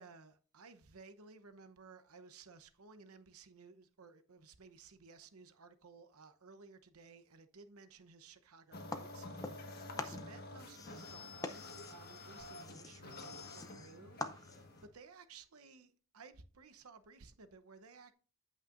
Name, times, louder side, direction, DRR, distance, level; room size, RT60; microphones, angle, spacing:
voice 1, 0.0-18.1, right 4 dB, 90° right, 0.8 m, -57 dB
sound 1, 8.7-14.9, left 2 dB, 45° left, 1.4 m, -50 dB
sound 2, 8.9-9.7 10.0-14.8, left 3 dB, 15° left, 0.6 m, -46 dB
14.5 x 5.5 x 2.5 m
head